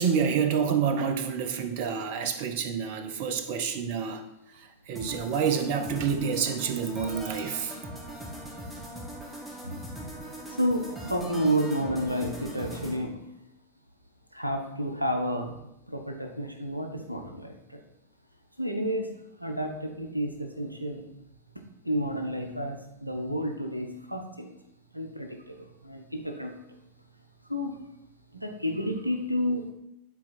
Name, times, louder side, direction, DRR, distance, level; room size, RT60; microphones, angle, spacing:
voice 1, 0.0-4.3 4.9-7.8, right 6 dB, 50° right, 0.8 m, -28 dB
sound 1, 5.0-13.0, right 1 dB, 5° right, 1.7 m, -40 dB
voice 2, 10.5-13.2 14.3-15.5 15.9-17.8 18.6-19.1 19.4-21.0 21.8-24.5 24.9-26.6 27.5-27.8 28.3-29.7, equal, 90° right, 0.9 m, -30 dB
9.6 x 4.3 x 4.3 m
figure-of-eight pair, 90°, 0 cm